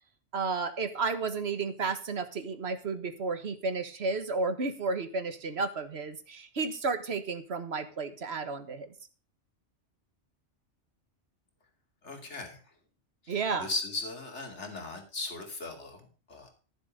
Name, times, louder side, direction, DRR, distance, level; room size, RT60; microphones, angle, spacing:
voice 1, 0.3-8.9 13.3-13.7, right 4 dB, 60° right, 9 dB, 1.6 m, -32 dB
voice 2, 12.0-12.7 13.2-16.5, left 2 dB, 75° left, 3 dB, 2.9 m, -38 dB
13.5 x 7.3 x 5.1 m, 0.37 s
omnidirectional pair, 1.2 m